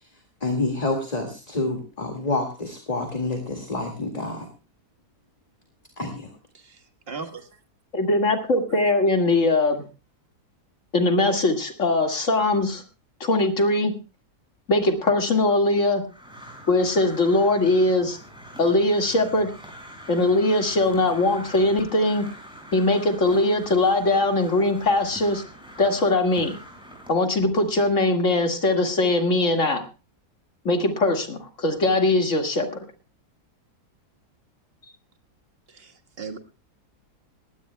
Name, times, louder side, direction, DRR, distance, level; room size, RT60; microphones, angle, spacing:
voice 1, 0.4-4.5 6.0-6.3, left 2 dB, 25° left, 4 dB, 2.1 m, -28 dB
voice 2, 6.5-7.5 8.7-8.8 35.7-36.4, right 5 dB, 40° right, 8 dB, 1.6 m, -38 dB
voice 3, 7.9-9.9 10.9-12.8 13.2-14.0 14.7-16.0 16.7-18.2 18.6-19.5 20.1-22.3 22.7-25.4 25.8-26.6 27.1-29.8 30.6-32.8, left 2 dB, 50° left, 5 dB, 2.4 m, -21 dB
Crow, 16.1-27.1, equal, 5° right, 5.7 m, -44 dB
21.0 x 16.5 x 2.2 m, 0.31 s
omnidirectional pair, 1.7 m